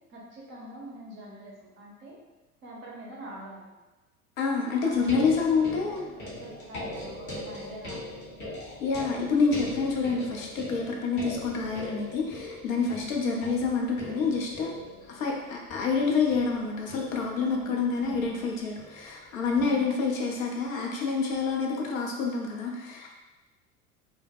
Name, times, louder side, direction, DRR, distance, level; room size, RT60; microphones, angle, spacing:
voice 1, 0.1-2.2 2.6-3.7 4.8-8.4 12.8-13.1 17.5-18.4 19.5-19.8, equal, 25° right, -4 dB, 0.6 m, -45 dB
voice 2, 4.4-6.1 8.8-14.7 15.0-23.1, left 4 dB, 60° left, 0 dB, 0.6 m, -27 dB
sound 1, 4.9-20.3 21.4-21.5, left 1 dB, 25° left, 0.7 m, -41 dB
2.1 x 2.0 x 3.4 m, 1.1 s
figure-of-eight pair, 80°, 45 cm